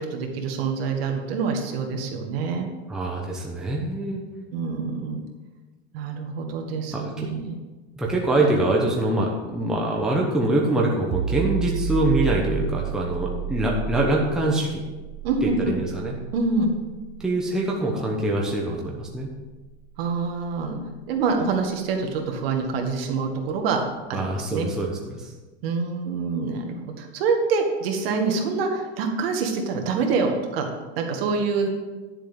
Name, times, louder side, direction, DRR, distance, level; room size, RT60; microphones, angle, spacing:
voice 1, 0.1-2.7 4.5-5.2 5.9-7.6 15.2-15.7 16.3-16.7 20.0-20.8 21.1-23.8 24.1-24.7 25.6-30.7 31.0-31.7, right 4 dB, 60° right, 2 dB, 2.0 m, -26 dB
voice 2, 2.9-4.2 6.9-7.3 7.9-14.8 15.4-16.2 17.2-19.3 24.1-25.3, right 1 dB, ahead, -3 dB, 1.0 m, -24 dB
sound 1, 11.1-22.5, right 9 dB, 30° right, 0.4 m, -33 dB
11.0 x 7.4 x 5.2 m, 1.2 s
supercardioid pair, 165°, 33 cm